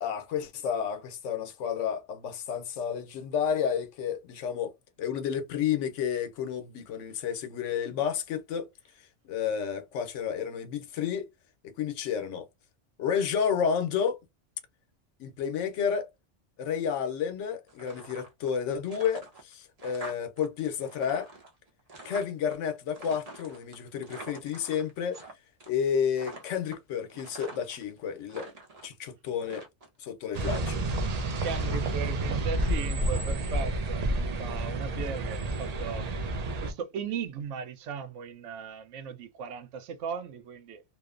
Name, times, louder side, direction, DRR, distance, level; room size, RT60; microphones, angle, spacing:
voice 1, 0.0-4.7 5.0-8.7 9.0-11.3 11.6-12.5 13.0-14.2 15.2-16.1 16.6-21.3 22.0-25.2 25.7-28.5 28.8-29.6 30.0-30.8, left 7 dB, 85° left, 1.0 m, -31 dB
sound 1, 17.7-18.6 18.8-20.5 20.7-22.5 22.9-25.3 25.6-25.9 26.1-27.8 28.2-28.9 29.4-30.0 30.4-31.1 31.4-33.2, right 2 dB, 40° right, 0.7 m, -45 dB
sound 2, 30.3-36.7, right 1 dB, 65° right, 0.4 m, -30 dB
voice 2, 31.4-36.1 36.6-40.8, right 6 dB, 85° right, 0.9 m, -37 dB
2.8 x 2.0 x 2.4 m
omnidirectional pair, 1.2 m